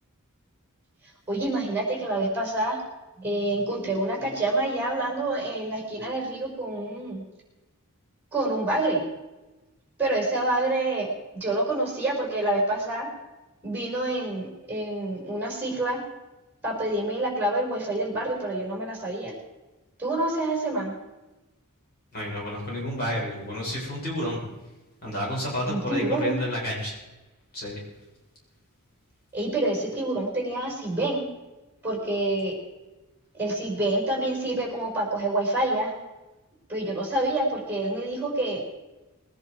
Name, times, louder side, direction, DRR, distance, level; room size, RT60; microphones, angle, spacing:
voice 1, 1.0-2.8 3.2-7.2 8.3-9.0 10.0-13.1 13.6-16.0 16.6-19.3 20.0-20.9 25.7-26.4 29.3-31.2 31.8-32.6 33.3-35.9 36.7-38.6, right 2 dB, 10° right, -2 dB, 5.4 m, -27 dB
voice 2, 22.1-24.4 25.0-26.9 27.5-27.8, left 1 dB, 45° left, -5 dB, 6.4 m, -30 dB
20.5 x 11.0 x 4.8 m, 1.1 s
head